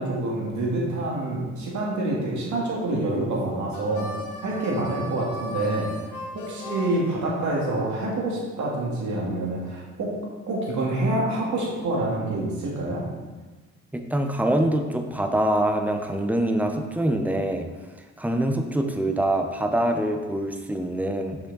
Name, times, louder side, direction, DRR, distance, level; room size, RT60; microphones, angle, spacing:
voice 1, 0.0-4.1 4.4-5.9 6.3-10.1 10.5-13.0, right 2 dB, 70° right, -3 dB, 2.0 m, -27 dB
Harmonica, 3.7-8.0, left 1 dB, 90° left, 1.1 m, -38 dB
voice 2, 13.9-17.7 18.2-21.4, right 1 dB, 5° right, 5 dB, 0.7 m, -24 dB
6.2 x 5.7 x 4.0 m, 1.3 s
cardioid pair, 90°, 30 cm